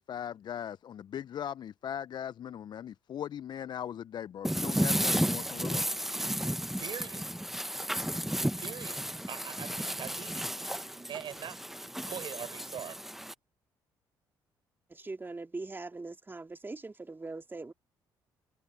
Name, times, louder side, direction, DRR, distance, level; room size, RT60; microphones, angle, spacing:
voice 1, 0.0-5.9, left 9 dB, 50° left, 0.5 m, -39 dB
sound 1, 4.4-13.3, equal, 5° right, 0.9 m, -33 dB
voice 2, 6.8-7.3 8.6-10.5 11.1-11.6 12.0-13.0, right 9 dB, 60° right, 5.2 m, -42 dB
voice 3, 14.9-17.7, right 3 dB, 25° right, 2.2 m, -41 dB
supercardioid pair, 60°, 9 cm